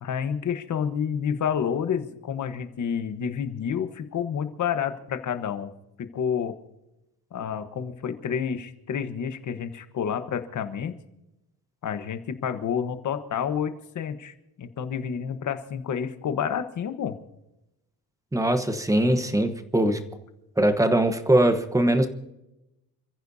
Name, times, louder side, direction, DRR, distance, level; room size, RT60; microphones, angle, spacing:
voice 1, 0.0-5.7 6.0-6.5 7.3-11.0 11.8-17.1, left 7 dB, 50° left, 9 dB, 1.3 m, -29 dB
voice 2, 18.3-20.0 20.6-22.1, right 1 dB, 10° right, 8 dB, 1.1 m, -21 dB
28.5 x 15.0 x 2.8 m, 0.92 s
cardioid pair, 165°, 37 cm